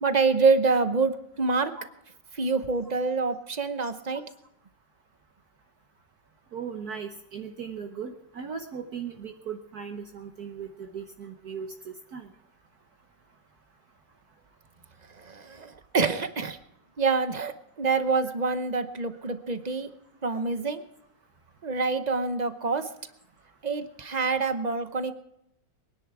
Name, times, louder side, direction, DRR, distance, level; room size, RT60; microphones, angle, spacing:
voice 1, 0.0-1.7 2.4-4.2 15.3-15.7 15.9-16.6 17.0-17.5 17.8-19.9 20.2-20.8 21.6-22.8 23.6-25.1, right 4 dB, 40° right, 10 dB, 0.6 m, -26 dB
voice 2, 6.5-12.3, right 6 dB, 60° right, 4 dB, 1.4 m, -38 dB
23.0 x 10.5 x 4.8 m, 0.80 s
omnidirectional pair, 2.0 m